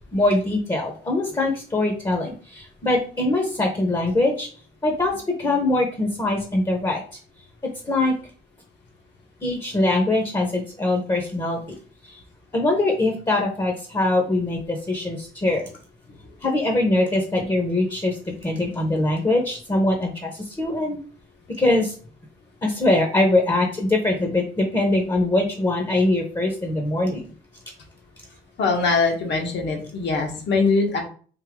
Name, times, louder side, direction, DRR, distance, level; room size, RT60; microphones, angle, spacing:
voice 1, 0.1-4.5 4.8-5.1 5.4-7.0 7.9-8.1 9.4-11.8 12.0-12.2 12.5-15.7 16.4-18.2 18.4-21.0 21.6-21.9 22.6-27.3, left 2 dB, 20° left, 2 dB, 0.8 m, -22 dB
voice 2, 28.6-31.0, left 4 dB, 65° left, 2 dB, 1.2 m, -22 dB
3.6 x 2.6 x 3.5 m, 0.43 s
cardioid pair, 90°, 20 cm